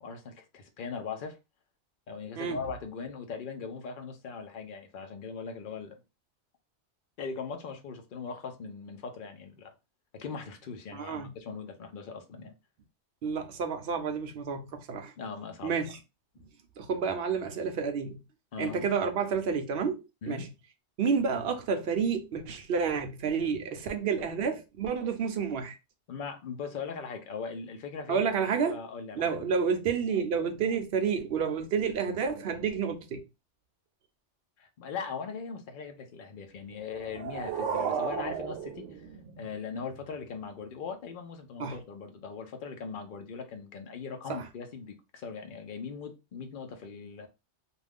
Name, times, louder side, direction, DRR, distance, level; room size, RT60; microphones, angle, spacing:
voice 1, 0.0-1.4 2.1-6.0 7.2-9.7 10.1-12.5 15.2-15.7 16.3-16.5 18.5-18.9 20.2-20.5 26.1-29.3 34.6-39.1 39.4-47.3, left 5 dB, 55° left, 0.7 m, -40 dB
voice 2, 10.9-11.3 13.2-15.1 15.6-16.0 16.8-18.2 18.6-20.5 21.0-25.8 28.1-28.8 29.1-33.2 41.6-41.8 44.3-44.4, right 6 dB, 65° right, 0.7 m, -30 dB
sound 1, 36.8-39.8, right 7 dB, 90° right, 0.9 m, -34 dB
2.6 x 2.3 x 3.4 m
omnidirectional pair, 1.2 m